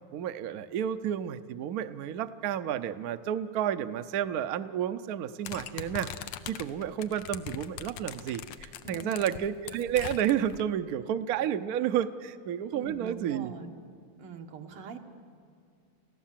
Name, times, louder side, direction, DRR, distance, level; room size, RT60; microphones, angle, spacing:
voice 1, 0.1-6.1 6.5-13.5, right 10 dB, 65° right, 11 dB, 0.9 m, -31 dB
sound 1, 5.4-10.6, left 10 dB, 85° left, 1.7 m, -41 dB
voice 2, 8.8-9.4 12.7-13.7 14.2-15.0, right 4 dB, 90° right, 4 dB, 2.3 m, -43 dB
29.5 x 16.0 x 7.4 m, 2.2 s
omnidirectional pair, 2.4 m